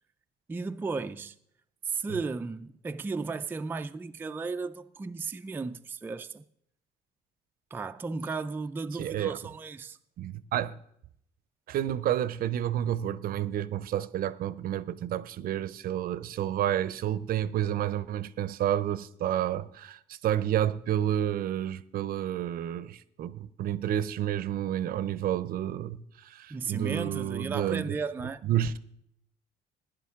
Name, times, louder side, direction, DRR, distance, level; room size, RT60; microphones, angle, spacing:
voice 1, 0.5-1.4 1.8-6.4 7.7-10.0 26.5-28.4, right 4 dB, 10° right, 0.3 m, -35 dB
voice 2, 9.0-9.4 10.2-10.8 11.7-28.0 28.4-28.8, right 11 dB, 60° right, 0.6 m, -30 dB
14.5 x 10.5 x 3.6 m
cardioid pair, 110°, 17 cm